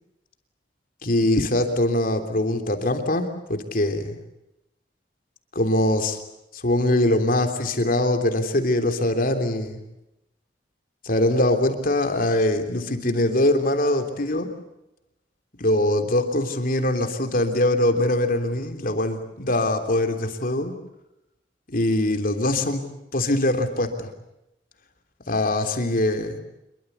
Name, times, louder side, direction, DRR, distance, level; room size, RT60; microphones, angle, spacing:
voice 1, 1.0-4.2 5.5-6.2 6.5-9.8 11.0-14.5 15.6-20.7 21.7-22.8 23.1-24.1 25.3-26.3, left 1 dB, 50° left, 6 dB, 3.3 m, -22 dB
26.5 x 23.5 x 8.2 m, 0.89 s
head